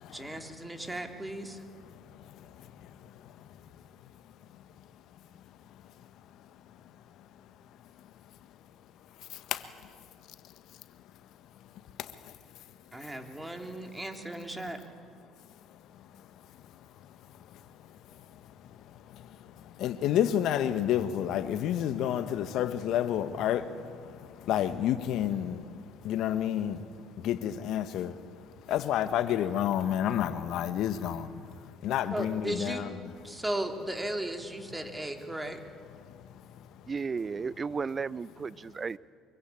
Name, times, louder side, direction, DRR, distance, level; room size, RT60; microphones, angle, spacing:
voice 1, 0.1-1.6 12.9-14.8 32.1-32.9 33.2-35.6, right 1 dB, 15° right, 4 dB, 3.7 m, -36 dB
voice 2, 19.8-23.6 24.5-25.6 26.0-26.8 27.2-28.1 28.7-31.3 31.8-32.9, left 10 dB, 65° left, 11 dB, 1.6 m, -29 dB
voice 3, 36.9-39.0, right 5 dB, 35° right, 20 dB, 0.7 m, -34 dB
25.0 x 23.5 x 8.8 m, 2.2 s
hypercardioid pair, 60°, 0 cm